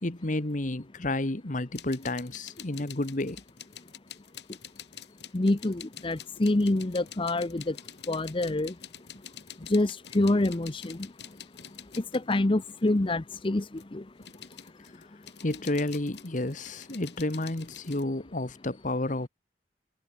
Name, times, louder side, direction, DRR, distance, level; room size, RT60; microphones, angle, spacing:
voice 1, 0.0-3.4 15.4-19.3, left 2 dB, 45° left, 1.4 m, -31 dB
sound 1, 1.8-13.0 13.4-18.0, left 9 dB, 70° left, 7.1 m, -47 dB
voice 2, 5.3-7.8 8.1-8.7 9.7-11.0 12.0-13.7 13.9-14.0, left 2 dB, 30° left, 0.7 m, -26 dB
head